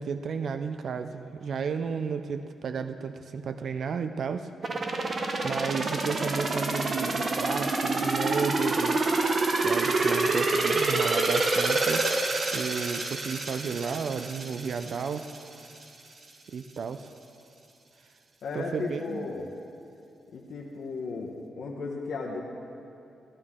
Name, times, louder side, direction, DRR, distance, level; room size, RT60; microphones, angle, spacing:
voice 1, 0.0-4.5 5.4-9.2 9.6-12.0 12.5-15.3 16.5-17.1 18.5-19.3, right 6 dB, 55° right, 9 dB, 0.4 m, -33 dB
sound 1, 4.6-15.4 15.8-15.9, right 3 dB, 35° right, 0.8 m, -27 dB
voice 2, 18.4-19.5 20.3-22.4, left 4 dB, 70° left, -3 dB, 1.0 m, -35 dB
15.0 x 11.0 x 3.7 m, 2.7 s
wide cardioid pair, 145°, 0 cm